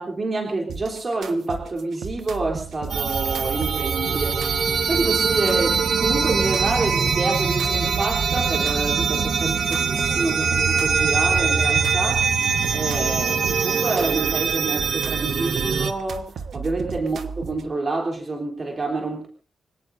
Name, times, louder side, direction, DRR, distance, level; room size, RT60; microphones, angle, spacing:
voice 1, 0.0-4.6 4.9-12.4 12.7-19.3, right 2 dB, 35° right, 2 dB, 3.4 m, -28 dB
sound 1, 0.7-17.7, right 5 dB, 90° right, 1.3 m, -35 dB
sound 2, 2.9-15.9, right 5 dB, 65° right, 1.4 m, -22 dB
26.0 x 17.5 x 2.7 m, 0.35 s
wide cardioid pair, 140°, 0 cm